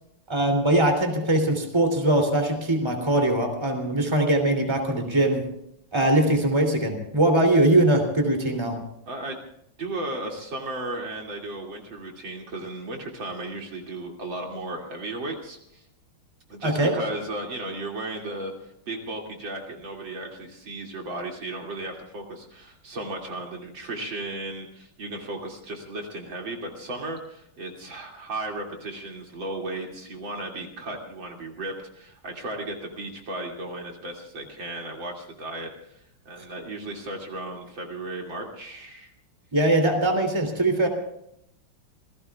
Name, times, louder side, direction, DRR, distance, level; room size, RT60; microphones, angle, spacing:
voice 1, 0.3-5.5 5.9-8.8 16.6-17.0 39.5-40.9, right 1 dB, 10° right, 4 dB, 3.1 m, -21 dB
voice 2, 9.1-9.4 9.8-15.8 16.5-39.1, right 2 dB, 65° right, 1 dB, 3.4 m, -35 dB
28.0 x 18.0 x 2.4 m, 0.74 s
omnidirectional pair, 2.3 m